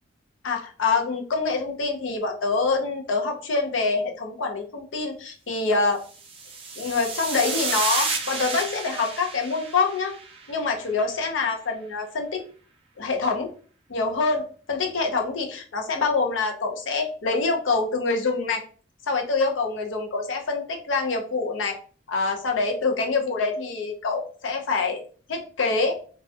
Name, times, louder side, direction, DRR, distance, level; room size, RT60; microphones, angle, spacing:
voice 1, 0.4-6.0 6.8-10.1 10.5-12.4 13.0-13.5 13.9-18.6 19.1-21.8 22.1-25.0 25.3-26.0, left 4 dB, 85° left, 3 dB, 0.5 m, -25 dB
sound 1, 6.2-10.7, right 4 dB, 30° right, 0.4 m, -31 dB
2.3 x 2.1 x 2.6 m, 0.41 s
head